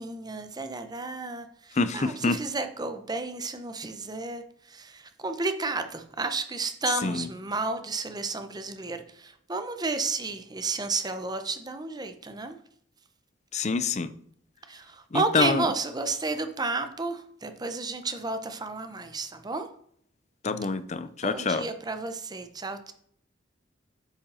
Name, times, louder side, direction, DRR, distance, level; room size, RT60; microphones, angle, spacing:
voice 1, 0.0-12.6 14.7-19.7 21.2-22.9, right 3 dB, 20° right, 8 dB, 0.8 m, -32 dB
voice 2, 1.8-2.4 7.0-7.3 13.5-14.1 15.1-15.6 20.4-21.6, left 4 dB, 35° left, 13 dB, 0.6 m, -26 dB
8.6 x 5.3 x 5.5 m, 0.65 s
head